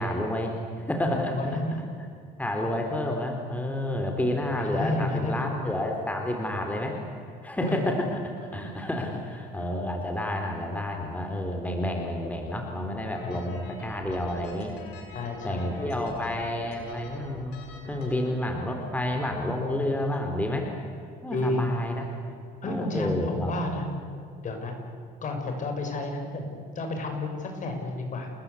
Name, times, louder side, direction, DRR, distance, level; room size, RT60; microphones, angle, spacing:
voice 1, 0.0-1.4 2.4-7.0 7.4-14.7 15.4-17.6 17.9-20.7 21.2-22.0 22.7-23.5, left 1 dB, 10° left, 2 dB, 3.4 m, -30 dB
voice 2, 1.3-1.8 4.6-5.6 7.6-7.8 13.2-13.7 15.1-15.7 19.5-19.6 21.3-21.6 22.3-22.4 22.6-23.9 24.4-24.7 25.2-28.3, left 2 dB, 50° left, 4 dB, 6.3 m, -31 dB
sound 1, 13.1-18.3, left 3 dB, 85° left, 7.2 m, -46 dB
29.0 x 20.5 x 8.3 m, 2.4 s
cardioid pair, 110°, 17 cm